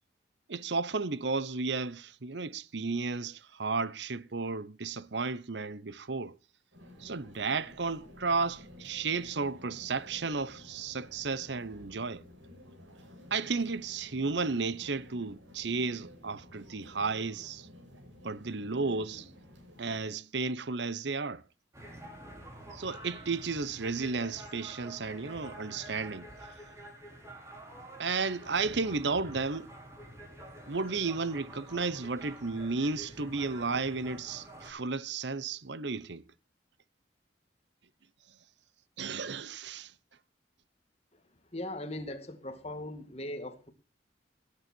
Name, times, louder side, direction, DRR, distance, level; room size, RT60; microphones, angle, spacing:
voice 1, 0.5-6.3 7.0-12.2 13.3-17.7 18.2-19.3 19.8-21.4 22.7-26.3 28.0-29.7 30.7-36.2 39.0-39.9, right 4 dB, 70° right, 0.8 m, -33 dB
sound 1, 6.7-20.1, left 1 dB, 90° right, 6.2 m, -53 dB
sound 2, 21.7-34.7, right 1 dB, 15° right, 4.6 m, -48 dB
voice 2, 41.5-43.7, left 1 dB, 35° left, 2.2 m, -39 dB
17.5 x 9.8 x 4.5 m
head